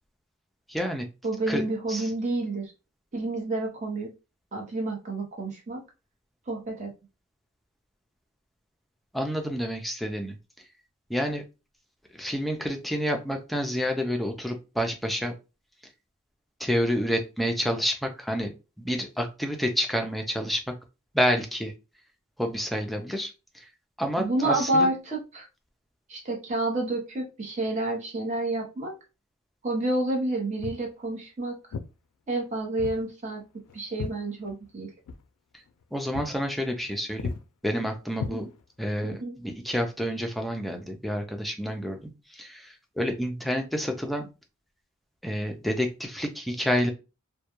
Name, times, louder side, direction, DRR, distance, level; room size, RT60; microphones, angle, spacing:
voice 1, 0.7-1.1 1.5-1.6 1.9-2.1 9.1-10.4 11.1-11.4 12.1-15.3 16.6-20.7 21.1-21.7 22.4-23.6 24.0-24.9 35.9-37.4 37.6-38.5 38.8-39.1 39.4-44.3 45.2-46.9, equal, ahead, 3 dB, 0.3 m, -29 dB
voice 2, 1.2-2.7 3.1-4.1 4.5-5.8 6.5-6.9 24.2-25.5 26.1-28.9 29.6-31.6 32.3-33.4 33.7-34.9 38.3-38.5 39.0-39.4, right 2 dB, 35° right, 0 dB, 0.7 m, -29 dB
Walk footsteps, 30.6-30.9 31.7-31.9 32.8-33.0 33.3-34.8 35.1-35.3 35.7-35.8 36.1-36.4 36.7-36.9 37.2-37.4 38.2-38.9, left 5 dB, 90° left, 0.3 m, -36 dB
2.2 x 2.1 x 2.9 m, 0.29 s
head